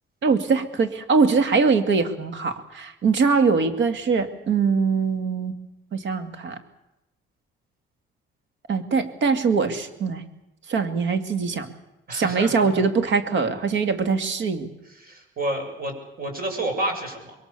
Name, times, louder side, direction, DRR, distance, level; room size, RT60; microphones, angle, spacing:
voice 1, 0.2-5.5 5.9-6.6 8.7-10.2 10.7-11.7 12.1-14.7, right 5 dB, 65° right, 8 dB, 2.6 m, -22 dB
voice 2, 12.1-12.8 15.0-17.3, right 1 dB, 45° right, 4 dB, 7.1 m, -30 dB
25.5 x 22.0 x 7.0 m, 0.94 s
cardioid pair, 110°, 21 cm